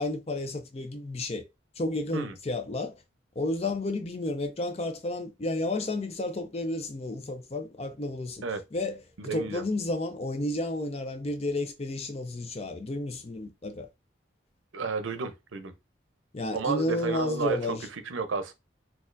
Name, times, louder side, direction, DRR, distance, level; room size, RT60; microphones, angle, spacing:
voice 1, 0.0-1.4 1.8-3.0 3.4-8.4 8.7-13.9 16.3-17.9, left 2 dB, 30° left, 0.5 m, -32 dB
voice 2, 9.2-9.6 14.7-15.7 16.5-18.5, right 4 dB, 90° right, 0.6 m, -32 dB
4.2 x 2.4 x 2.5 m
head